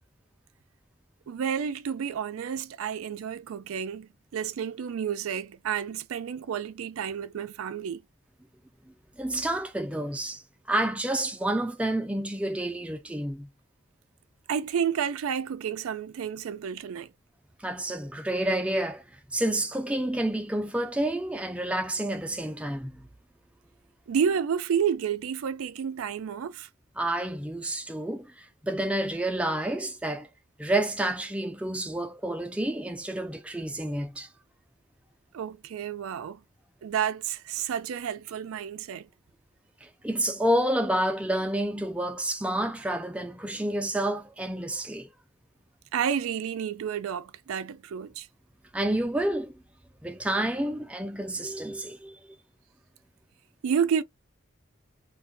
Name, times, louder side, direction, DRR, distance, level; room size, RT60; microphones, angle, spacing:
voice 1, 1.3-8.0 14.5-17.1 24.1-26.7 35.3-36.4 36.8-39.1 45.9-48.3 53.6-54.0, right 7 dB, 90° right, 0.4 m, -30 dB
voice 2, 9.2-13.5 17.6-23.1 27.0-30.3 30.6-34.3 39.8-45.1 48.7-49.5 50.0-52.2, right 1 dB, 5° right, 0.3 m, -29 dB
2.3 x 2.1 x 3.7 m
head